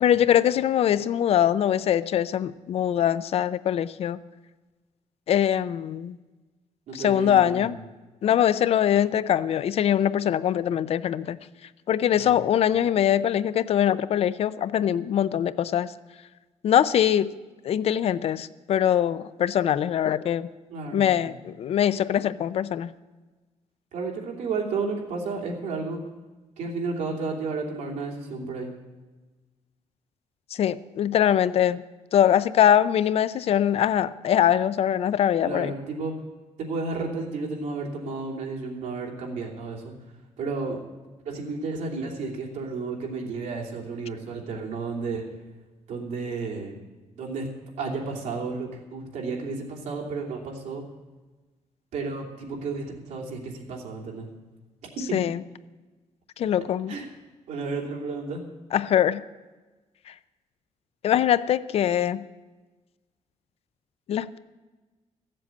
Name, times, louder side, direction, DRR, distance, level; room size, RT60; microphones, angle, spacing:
voice 1, 0.0-4.2 5.3-6.2 6.9-7.8 8.2-11.4 11.9-15.9 16.6-17.3 17.6-20.5 20.9-22.9 30.5-31.8 32.1-35.7 55.1-55.4 56.4-56.9 58.7-59.2 61.0-62.2 64.1-64.4, left 10 dB, 55° left, 16 dB, 0.5 m, -22 dB
voice 2, 6.9-7.7 12.1-12.4 20.7-21.4 23.9-26.0 26.6-28.7 35.4-36.2 36.6-39.9 40.4-40.8 41.2-45.2 45.9-46.8 47.2-47.5 47.8-50.8 51.9-54.3 55.0-55.1 56.9-57.0 57.5-58.4, right 4 dB, 80° right, -1 dB, 3.0 m, -32 dB
15.0 x 7.6 x 8.3 m, 1.2 s
cardioid pair, 145°, 12 cm